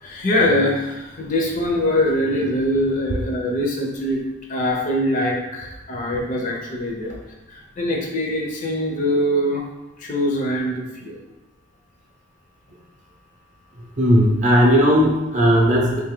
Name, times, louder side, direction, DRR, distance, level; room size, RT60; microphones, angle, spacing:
voice 1, 0.0-4.2 4.5-7.2 7.5-9.6 10.0-11.2, left 1 dB, 40° left, 0 dB, 0.5 m, -23 dB
voice 2, 13.8-16.0, equal, 35° right, -1 dB, 0.6 m, -16 dB
3.4 x 2.5 x 3.6 m, 1.0 s
head